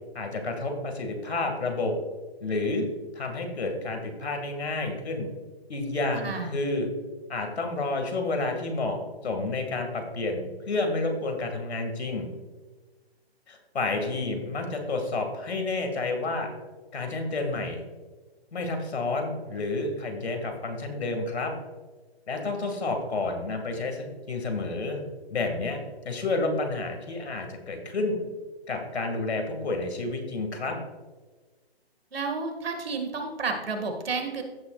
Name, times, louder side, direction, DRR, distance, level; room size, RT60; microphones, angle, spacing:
voice 1, 0.1-1.9 2.4-2.8 3.1-5.3 5.7-6.9 7.3-12.3 13.5-16.5 16.9-17.8 18.5-21.5 22.3-25.0 25.3-25.8 26.0-28.2 28.7-30.8, left 3 dB, 80° left, 4 dB, 2.1 m, -30 dB
voice 2, 6.2-6.5 32.1-34.4, right 4 dB, 65° right, 4 dB, 2.0 m, -31 dB
15.0 x 6.3 x 2.4 m, 1.3 s
hypercardioid pair, 175°, 32 cm